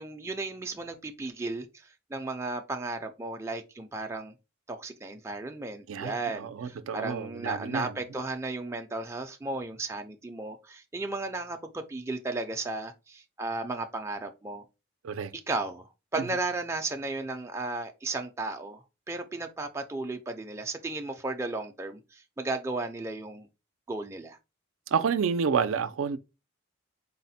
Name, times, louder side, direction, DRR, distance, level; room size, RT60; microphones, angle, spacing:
voice 1, 0.0-4.3 4.7-14.6 15.5-23.5 23.9-24.4, right 2 dB, 15° right, 0.3 m, -35 dB
voice 2, 5.9-8.0 15.0-15.3 24.9-26.2, right 6 dB, 80° right, 0.4 m, -29 dB
4.0 x 2.1 x 4.1 m
head